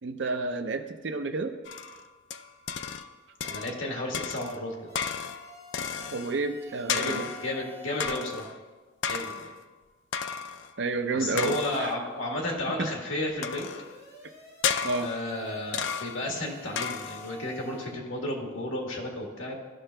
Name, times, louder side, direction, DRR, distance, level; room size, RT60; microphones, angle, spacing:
voice 1, 0.0-1.6 6.1-7.2 10.8-11.9 12.8-12.9 14.8-15.1, right 3 dB, 65° right, 7 dB, 0.5 m, -30 dB
sound 1, 1.6-3.1 3.4-3.9 4.1-6.4 6.9-7.5 8.0-8.6 9.0-9.6 10.1-10.7 11.4-12.0 13.4-13.9 14.6-15.3 15.7-16.3 16.8-17.4, left 7 dB, 65° left, 0.3 m, -33 dB
voice 2, 3.4-4.9 6.9-8.4 9.1-9.5 11.1-13.7 15.0-19.6, left 1 dB, 85° left, 0 dB, 1.4 m, -33 dB
sound 2, 4.9-8.3 13.7-18.0, left 1 dB, 30° left, 1.3 m, -49 dB
13.5 x 5.7 x 2.2 m, 1.4 s
head